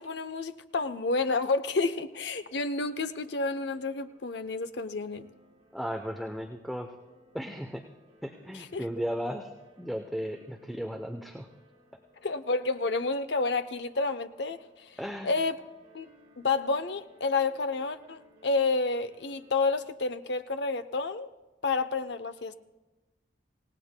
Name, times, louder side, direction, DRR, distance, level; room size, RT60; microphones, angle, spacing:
voice 1, 0.0-5.2 8.5-8.9 12.2-14.6 15.2-15.6 15.9-16.1 16.4-21.3 21.6-22.5, left 3 dB, 70° left, 10 dB, 0.7 m, -30 dB
sound 1, 2.1-19.7, equal, 25° right, 5.6 m, -62 dB
voice 2, 5.7-6.9 7.3-7.8 8.2-9.5 9.8-11.5 15.0-15.4, equal, ahead, 3 dB, 0.6 m, -35 dB
26.5 x 17.5 x 2.2 m, 1.1 s
head